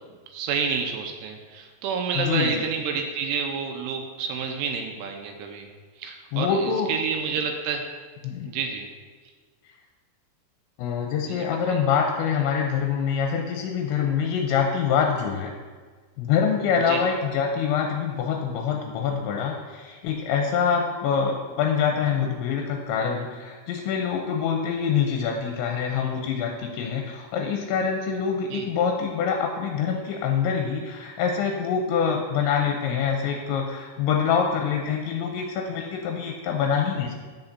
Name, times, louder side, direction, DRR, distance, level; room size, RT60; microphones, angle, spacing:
voice 1, 0.3-5.7 6.0-7.8 8.4-8.9 11.2-11.8 16.8-17.0 28.5-28.7, right 6 dB, 85° right, 3 dB, 3.1 m, -29 dB
voice 2, 2.2-2.5 6.3-6.9 8.2-8.5 10.8-15.5 16.2-37.1, left 7 dB, 80° left, 2 dB, 2.7 m, -25 dB
16.0 x 5.8 x 2.7 m, 1.5 s
omnidirectional pair, 5.7 m